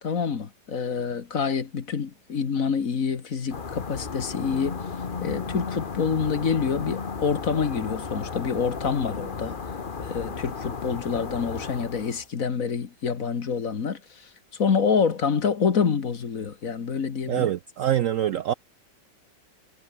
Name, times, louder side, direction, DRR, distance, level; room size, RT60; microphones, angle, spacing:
voice 1, 0.0-4.8 5.2-9.6 10.0-14.0 14.6-17.5, left 6 dB, 50° left, 1.9 m, -27 dB
sound 1, 3.5-12.3, left 5 dB, 30° left, 1.3 m, -34 dB
voice 2, 17.3-18.5, right 11 dB, 70° right, 0.8 m, -24 dB
omnidirectional pair, 1.9 m